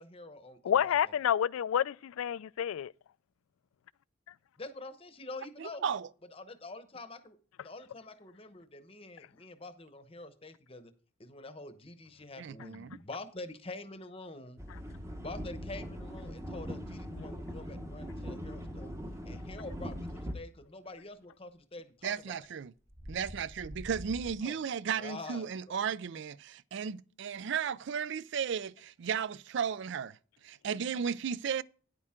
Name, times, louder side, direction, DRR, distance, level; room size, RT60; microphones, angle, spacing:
voice 1, 0.0-1.2 4.6-5.9 6.3-10.9 11.2-14.6 15.2-18.9 19.2-22.4 24.4-24.7 25.0-25.8, left 2 dB, 25° left, 0.9 m, -46 dB
voice 2, 0.7-2.9, left 9 dB, 85° left, 0.3 m, -29 dB
voice 3, 5.6-6.1 12.4-13.0 22.0-22.7 23.1-30.2 30.4-31.6, right 7 dB, 60° right, 0.4 m, -35 dB
sound 1, 14.6-20.3, equal, 15° right, 0.9 m, -41 dB
sound 2, 22.1-22.3 22.8-24.4, equal, 30° right, 2.0 m, -46 dB
9.9 x 8.7 x 3.6 m
head